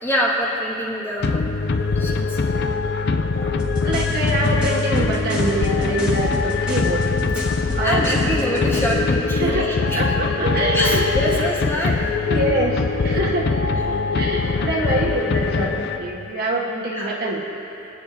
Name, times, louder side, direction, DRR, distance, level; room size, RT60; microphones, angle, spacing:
voice 1, 0.0-1.5 2.0-2.4 3.4-3.5 7.8-10.1 10.6-12.1 14.6-14.8 16.9-17.2, equal, 10° left, -4 dB, 1.8 m, -25 dB
sound 1, 1.2-16.3, left 4 dB, 55° left, 0.5 m, -22 dB
sound 2, 3.6-9.1, equal, 5° right, 1.8 m, -30 dB
voice 2, 3.8-7.0 7.7-8.5 9.4-11.0 11.3-11.4 12.3-13.6 13.9-17.4, right 1 dB, 55° right, -2 dB, 1.3 m, -25 dB
25.5 x 9.0 x 2.7 m, 2.9 s
head